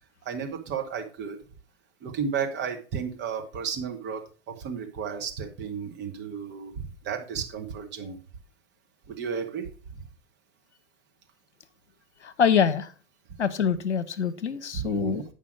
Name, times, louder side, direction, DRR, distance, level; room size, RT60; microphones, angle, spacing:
voice 1, 0.2-1.4 2.0-8.2 9.1-9.7 10.0-10.1 14.7-15.2, right 6 dB, 30° right, 3 dB, 1.6 m, -33 dB
voice 2, 12.2-12.9 13.4-15.2, left 7 dB, 75° left, 11 dB, 0.8 m, -25 dB
8.5 x 5.6 x 4.9 m, 0.37 s
figure-of-eight pair, 90°, 34 cm